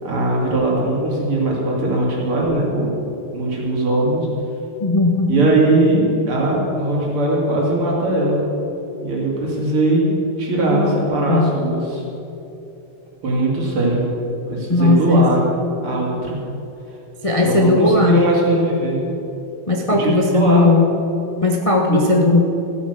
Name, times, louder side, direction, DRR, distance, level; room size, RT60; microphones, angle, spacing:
voice 1, 0.0-2.9 3.3-4.3 5.3-8.4 9.0-10.1 10.4-12.0 13.2-14.0 14.5-15.5 15.8-16.4 17.4-19.0 20.0-20.7 21.9-22.0, right 2 dB, 85° right, -3 dB, 3.5 m, -19 dB
voice 2, 4.8-5.3 10.7-10.9 11.3-11.5 14.7-15.3 17.2-18.2 19.7-20.8 21.4-22.4, left 2 dB, 45° left, 1 dB, 0.4 m, -16 dB
15.0 x 8.5 x 6.7 m, 3.0 s
omnidirectional pair, 2.3 m